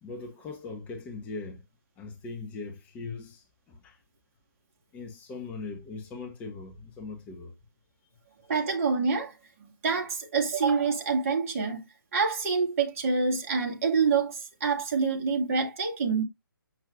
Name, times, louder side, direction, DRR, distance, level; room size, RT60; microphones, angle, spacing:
voice 1, 0.0-1.6 2.0-4.0 4.9-7.5, left 4 dB, 10° left, 0.9 m, -40 dB
voice 2, 8.5-11.9 12.1-16.2, right 5 dB, 40° right, 2.1 m, -27 dB
7.4 x 6.3 x 2.5 m
figure-of-eight pair, 140°, 12 cm